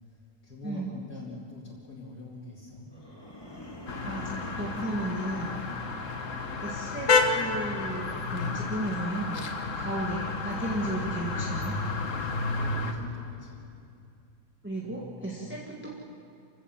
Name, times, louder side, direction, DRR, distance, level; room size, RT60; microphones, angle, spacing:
voice 1, 0.1-3.0 5.7-5.9 12.5-13.7 14.8-15.6, left 2 dB, 80° left, -6 dB, 3.5 m, -45 dB
sound 1, 2.9-5.0, left 1 dB, 15° left, 2.5 m, -44 dB
sound 2, 3.9-12.9, left 4 dB, 55° left, 1.7 m, -30 dB
voice 2, 4.0-5.6 6.6-11.8 14.6-15.9, right 1 dB, 5° right, -3 dB, 1.9 m, -34 dB
28.0 x 16.0 x 7.5 m, 2.5 s
omnidirectional pair, 1.7 m